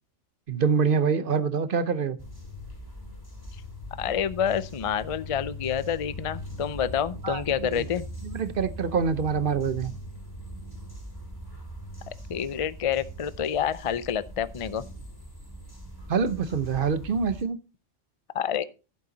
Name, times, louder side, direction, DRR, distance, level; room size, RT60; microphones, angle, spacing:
voice 1, 0.5-2.2 7.2-7.9 8.2-9.9 16.1-17.6, right 6 dB, 50° right, 0.9 m, -25 dB
sound 1, 2.2-17.4, equal, 15° left, 2.9 m, -41 dB
voice 2, 4.0-8.1 12.1-14.8 18.3-18.6, left 8 dB, 55° left, 0.3 m, -28 dB
11.5 x 8.5 x 3.9 m
omnidirectional pair, 1.3 m